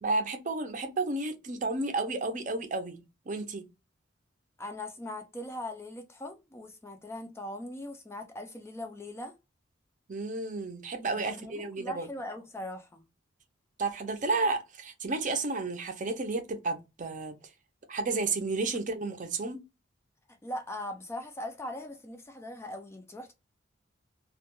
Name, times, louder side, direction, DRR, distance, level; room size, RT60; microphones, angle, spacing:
voice 1, 0.0-3.6 10.1-12.1 13.8-17.4 17.9-19.6, right 3 dB, 40° right, 0.5 m, -32 dB
voice 2, 4.6-9.3 11.2-13.0 20.4-23.3, left 1 dB, 15° left, 0.3 m, -40 dB
2.3 x 2.1 x 2.9 m
head